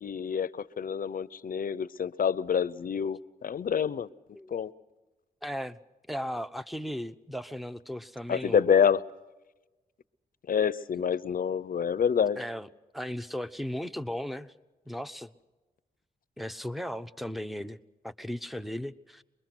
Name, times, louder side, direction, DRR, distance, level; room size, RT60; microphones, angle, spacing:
voice 1, 0.0-4.1 4.5-4.7 8.3-9.0 10.5-12.4, left 7 dB, 60° left, 17 dB, 0.7 m, -27 dB
voice 2, 5.4-5.8 6.1-8.7 12.4-12.7 12.9-14.5 14.9-15.3 16.4-17.8 18.0-19.2, equal, ahead, 12 dB, 0.9 m, -36 dB
24.5 x 21.5 x 6.1 m, 1.2 s
cardioid pair, 70°, 16 cm